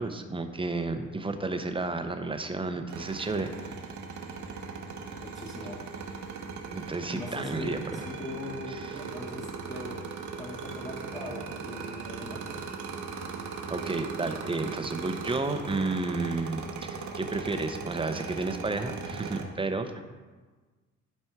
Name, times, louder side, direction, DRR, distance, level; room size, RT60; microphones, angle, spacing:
voice 1, 0.0-3.7 6.7-8.0 8.7-8.9 13.7-20.0, right 3 dB, 15° right, 7 dB, 0.7 m, -32 dB
sound 1, 2.9-19.4, right 5 dB, 70° right, 1.2 m, -39 dB
voice 2, 5.2-5.8 7.1-12.5, left 1 dB, 25° left, -4 dB, 1.5 m, -40 dB
11.5 x 4.3 x 4.6 m, 1.4 s
cardioid pair, 90°, 30 cm